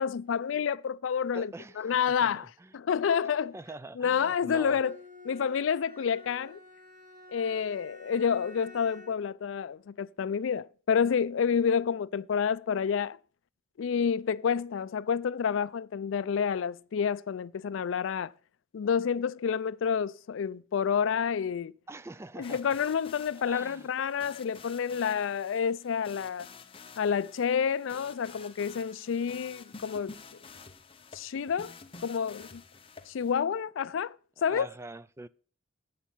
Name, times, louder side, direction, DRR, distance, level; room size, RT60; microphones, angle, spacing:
voice 1, 0.0-3.5 4.0-5.0 5.2-6.6 7.3-13.2 13.8-18.3 18.7-21.7 22.4-26.5 27.0-30.2 31.1-31.7 32.0-32.6 33.1-34.2 34.4-34.7, left 7 dB, 70° left, 0.4 m, -29 dB
voice 2, 1.3-2.3 2.6-2.7 3.5-4.8 21.9-22.6 23.4-23.9 34.4-35.3, right 2 dB, 15° right, 0.3 m, -44 dB
Bowed string instrument, 4.5-9.3, left 2 dB, 45° right, 1.5 m, -51 dB
sound 1, 22.4-33.3, left 5 dB, 30° left, 0.7 m, -50 dB
8.1 x 6.6 x 5.6 m
head